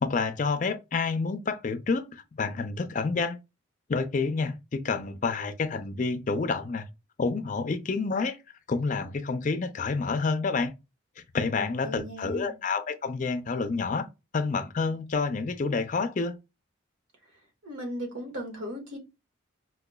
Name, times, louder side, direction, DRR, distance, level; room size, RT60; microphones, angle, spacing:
voice 1, 0.0-3.4 3.9-6.8 7.2-8.4 8.7-10.7 11.3-14.1 14.3-16.4, left 4 dB, 40° left, 0.4 m, -28 dB
voice 2, 11.5-12.6 17.6-19.0, equal, 85° right, 1.3 m, -37 dB
4.7 x 2.2 x 2.2 m
head